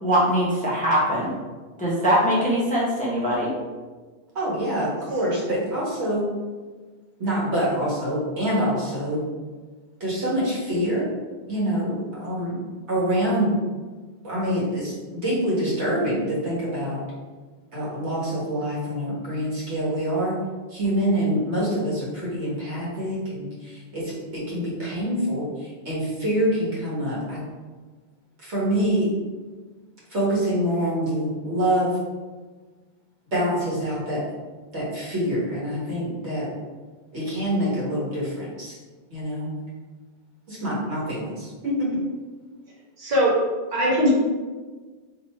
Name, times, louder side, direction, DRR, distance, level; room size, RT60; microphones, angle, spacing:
voice 1, 0.0-1.4 1.8-3.5, equal, 10° left, -6 dB, 0.6 m, -22 dB
voice 2, 4.4-6.3 7.2-9.2 10.0-11.1 11.5-12.6 12.9-13.5 14.2-17.0 17.7-20.4 20.7-27.4 28.4-29.1 30.1-31.9 33.3-34.2 34.7-36.5 37.1-38.8 39.1-39.5 40.5-41.9, equal, 80° right, -7 dB, 1.6 m, -25 dB
voice 3, 43.0-43.4 43.7-44.1, equal, 50° right, -4 dB, 1.1 m, -20 dB
3.0 x 3.0 x 4.1 m, 1.4 s
omnidirectional pair, 1.1 m